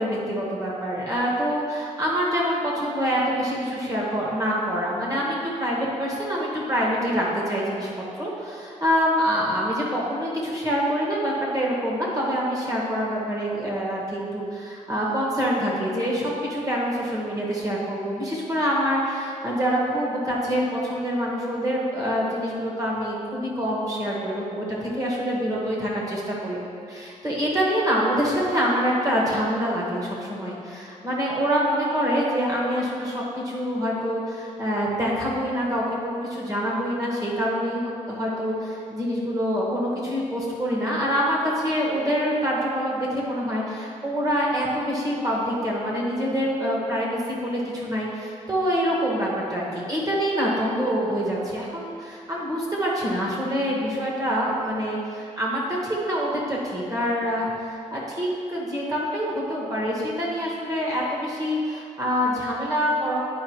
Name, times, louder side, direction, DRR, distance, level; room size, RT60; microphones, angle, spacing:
voice 1, 0.0-26.6 26.9-63.2, equal, 25° right, -4 dB, 1.8 m, -26 dB
10.0 x 4.9 x 3.2 m, 2.5 s
cardioid pair, 115°, 13 cm